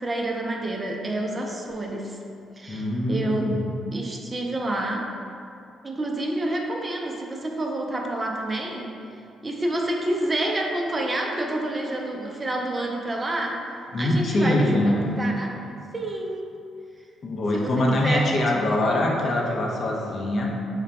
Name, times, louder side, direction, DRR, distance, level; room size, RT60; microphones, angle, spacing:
voice 1, 0.0-2.2 2.6-3.5 3.9-5.1 5.8-8.9 9.4-13.7 14.0-15.6 15.9-16.5 17.5-18.3, right 1 dB, 25° right, 1 dB, 0.4 m, -28 dB
voice 2, 2.7-3.6 13.9-15.1 17.2-20.5, left 1 dB, 50° left, -1 dB, 0.5 m, -23 dB
3.2 x 2.2 x 3.9 m, 2.5 s
cardioid pair, 90°, 0 cm